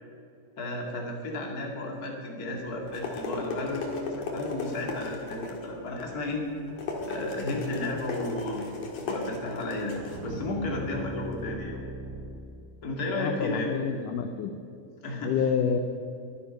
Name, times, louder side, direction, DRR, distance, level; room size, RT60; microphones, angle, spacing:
voice 1, 0.6-6.5 7.0-11.8 12.8-13.7 15.0-15.3, left 2 dB, 30° left, 0 dB, 2.1 m, -33 dB
sound 1, 2.6-11.4, left 3 dB, 55° left, 3.0 m, -36 dB
sound 2, 10.0-13.1, right 1 dB, 75° right, 1.4 m, -39 dB
voice 2, 13.2-14.5 15.2-15.8, left 7 dB, 75° left, 6 dB, 2.0 m, -28 dB
22.0 x 10.0 x 5.4 m, 2.6 s
omnidirectional pair, 4.4 m